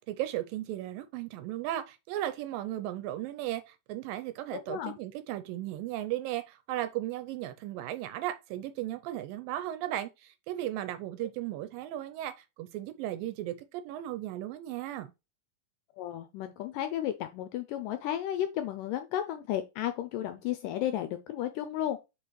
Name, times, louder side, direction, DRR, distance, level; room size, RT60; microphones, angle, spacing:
voice 1, 0.0-15.1, right 13 dB, 80° right, 2.1 m, -36 dB
voice 2, 4.5-5.0 16.0-22.0, left 11 dB, 80° left, 2.0 m, -33 dB
6.1 x 5.1 x 3.0 m
omnidirectional pair, 4.3 m